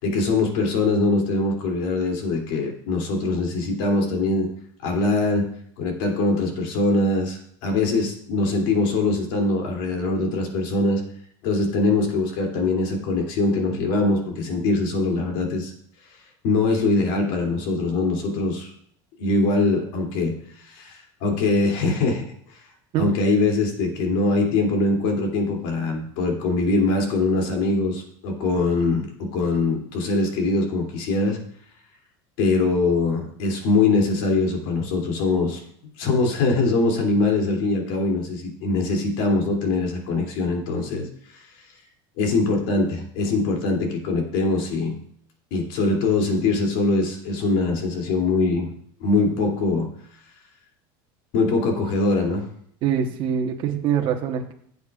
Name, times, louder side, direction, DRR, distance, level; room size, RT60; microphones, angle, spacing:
voice 1, 0.0-4.5 4.8-5.5 5.8-11.0 11.4-15.7 16.4-18.7 19.2-22.3 23.0-31.4 32.4-35.6 36.0-41.1 42.2-45.0 45.5-48.7 49.0-49.9 51.3-52.4, left 3 dB, 65° left, 1 dB, 2.8 m, -22 dB
voice 2, 52.8-54.5, right 8 dB, 45° right, 3 dB, 1.1 m, -24 dB
15.5 x 8.2 x 2.5 m, 0.64 s
supercardioid pair, 155°, 12 cm